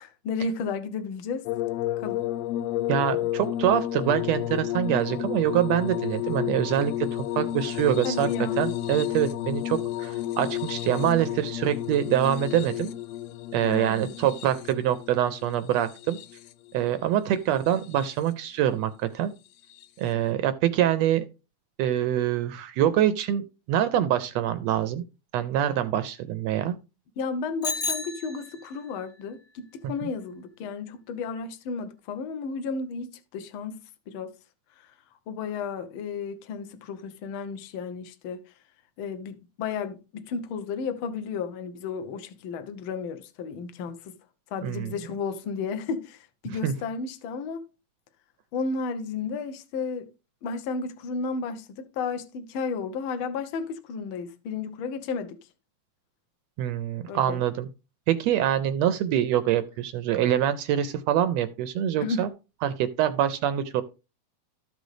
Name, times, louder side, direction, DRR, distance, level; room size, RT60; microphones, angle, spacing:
voice 1, 0.0-1.4 2.0-2.2 8.0-8.6 13.6-14.1 27.2-33.8 34.1-34.3 34.8-34.9 35.3-38.4 39.0-44.1 44.5-47.6 48.5-50.1 50.4-55.4 57.1-57.4 62.0-62.3, left 5 dB, 70° left, 1.2 m, -33 dB
sound 1, 1.5-16.7 17.6-18.3 19.7-19.9, left 13 dB, 90° left, 1.4 m, -31 dB
voice 2, 2.9-8.3 8.6-12.9 13.5-16.2 16.7-19.3 20.0-21.2 21.8-25.0 25.3-26.8 44.6-44.9 46.6-46.7 56.6-57.7 58.1-62.3 62.6-63.8, right 11 dB, 80° right, 1.5 m, -25 dB
Bicycle bell, 27.6-28.9, left 3 dB, 35° left, 1.0 m, -32 dB
13.5 x 5.2 x 3.2 m
omnidirectional pair, 3.6 m